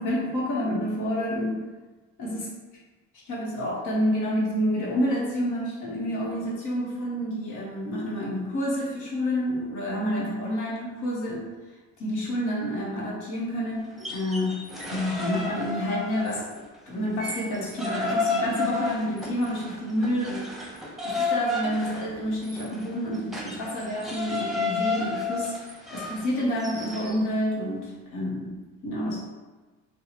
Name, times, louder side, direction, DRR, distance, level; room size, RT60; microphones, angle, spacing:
voice 1, 0.0-1.7 2.2-2.5 3.3-11.5 12.0-16.5 16.9-20.7 21.0-29.2, equal, 85° left, -4 dB, 0.9 m, -29 dB
sound 1, 13.9-16.6 16.9-27.2, left 3 dB, ahead, 0.6 m, -32 dB
4.3 x 2.0 x 2.9 m, 1.2 s
cardioid pair, 90°, 30 cm